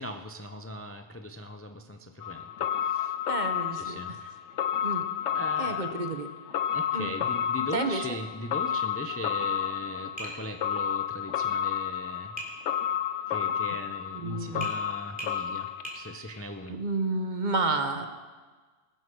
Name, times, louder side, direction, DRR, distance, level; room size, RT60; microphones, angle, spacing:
voice 1, 0.0-3.1 3.7-4.2 5.3-6.0 6.7-12.4 13.3-16.8, equal, 20° left, 6 dB, 0.5 m, -39 dB
sound 1, 2.2-16.4 16.7-16.8, left 9 dB, 90° left, 1.0 m, -31 dB
voice 2, 3.3-4.3 4.8-5.0 5.6-6.3 6.9-7.1 7.7-8.2 14.1-14.7 16.7-18.1, right 3 dB, 45° right, 7 dB, 1.1 m, -31 dB
Tap, 10.2-10.4 12.4-12.6 14.6-14.8 15.2-15.4 15.9-16.0, right 1 dB, 5° right, 3.2 m, -38 dB
20.0 x 8.0 x 6.2 m, 1.4 s
omnidirectional pair, 1.1 m